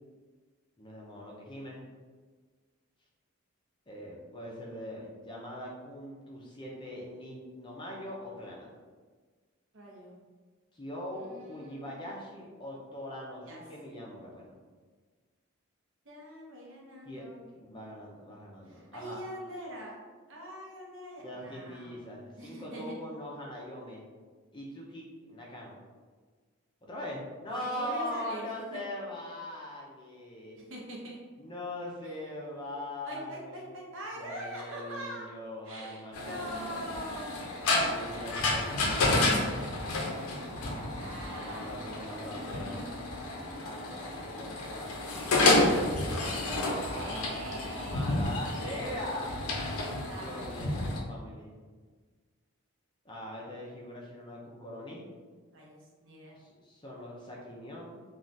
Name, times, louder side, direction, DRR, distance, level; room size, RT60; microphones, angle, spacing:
voice 1, 0.8-1.9 3.9-8.7 10.7-14.6 17.1-17.2 17.5-19.2 21.2-24.0 24.5-25.8 26.8-30.6 31.4-33.7 34.2-36.9 37.8-39.4 40.5-42.7 43.6-45.1 46.7-49.4 50.1-51.5 53.0-55.0 56.3-58.0, left 1 dB, 20° left, -3 dB, 0.4 m, -41 dB
voice 2, 4.4-5.1 9.7-10.1 11.2-12.0 13.5-13.6 16.0-17.4 18.6-20.0 20.3-22.0 22.4-22.9 27.5-28.8 30.6-31.2 32.0-32.2 33.1-35.3 35.6-37.4 37.7-38.1 40.9-41.7 42.0-42.8 46.9-48.2 50.0-50.5 55.5-56.4, equal, 60° right, -2 dB, 0.7 m, -43 dB
sound 1, 36.1-51.0, left 2 dB, 80° left, 0.5 m, -30 dB
3.2 x 2.3 x 2.6 m, 1.5 s
head